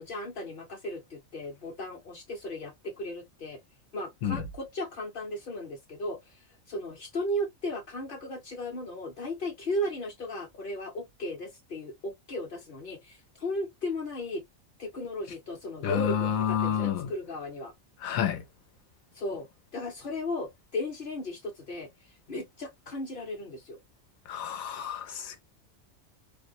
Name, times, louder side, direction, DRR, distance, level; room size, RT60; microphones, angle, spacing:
voice 1, 0.0-3.6 3.9-14.4 14.8-17.7 19.1-19.5 19.7-23.8, left 1 dB, 50° left, 0.8 m, -36 dB
voice 2, 15.8-17.1 18.0-18.4 24.3-25.4, left 8 dB, 90° left, 1.1 m, -29 dB
2.7 x 2.1 x 2.5 m
omnidirectional pair, 1.4 m